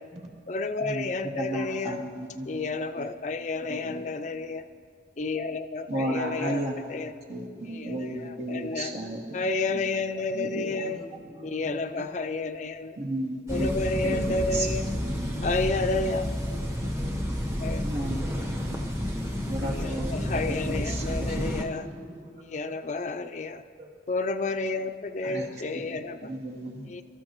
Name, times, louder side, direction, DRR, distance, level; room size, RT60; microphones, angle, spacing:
voice 1, 0.5-2.0 2.5-4.6 5.2-6.6 6.9-7.1 7.7-8.9 9.3-11.0 11.4-13.0 13.5-14.9 15.4-16.3 17.6-17.8 19.8-21.8 22.5-23.6 24.1-26.3 26.9-27.0, left 3 dB, 40° left, 9 dB, 0.5 m, -30 dB
voice 2, 1.4-2.7 3.0-3.1 3.7-4.1 5.9-9.4 9.7-10.0 10.3-10.8 13.0-13.7 14.0-14.7 15.0-15.4 17.8-18.3 19.5-21.6 25.2-25.5 26.2-27.0, right 1 dB, 65° right, -1 dB, 2.3 m, -34 dB
voice 3, 10.8-12.1 16.9-17.1 21.3-22.4 23.8-23.9, equal, 40° right, -2 dB, 2.9 m, -43 dB
sound 1, 13.5-21.6, equal, 15° right, 1.0 m, -30 dB
25.5 x 13.5 x 3.0 m, 2.2 s
head